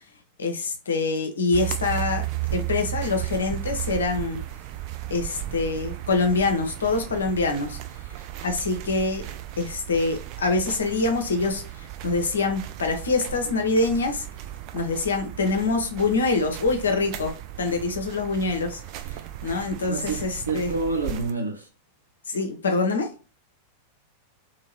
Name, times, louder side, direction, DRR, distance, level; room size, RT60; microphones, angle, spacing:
voice 1, 0.4-2.2 2.5-4.4 5.1-7.8 8.4-9.2 9.6-14.2 14.7-18.8 19.1-20.7 22.3-23.1, left 3 dB, 70° left, 0.7 m, -25 dB
sound 1, 1.5-21.3, right 15 dB, 45° right, 0.4 m, -35 dB
voice 2, 19.9-21.7, right 3 dB, 85° right, 0.7 m, -28 dB
2.7 x 2.7 x 3.0 m
figure-of-eight pair, 90°, 0 cm